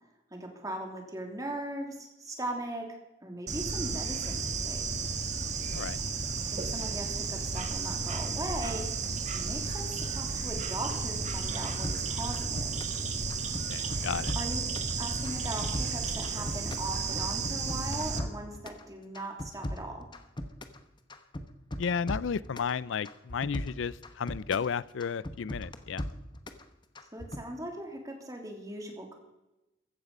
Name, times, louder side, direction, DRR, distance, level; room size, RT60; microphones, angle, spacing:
voice 1, 0.3-4.8 6.5-12.7 14.3-14.6 15.0-20.0 27.1-29.1, right 1 dB, 20° right, 2 dB, 2.9 m, -39 dB
Bird / Insect, 3.5-18.2, right 4 dB, 40° right, 1.6 m, -33 dB
sound 1, 11.8-13.0 13.3-14.9 15.2-16.9 17.2-18.8 19.1-20.8 21.1-22.7 23.1-24.7 25.0-26.6 27.0-27.4, left 1 dB, 25° left, 1.0 m, -38 dB
voice 2, 13.7-14.3 21.8-26.0, left 6 dB, 85° left, 20 dB, 0.4 m, -33 dB
15.5 x 13.0 x 5.4 m, 0.98 s
head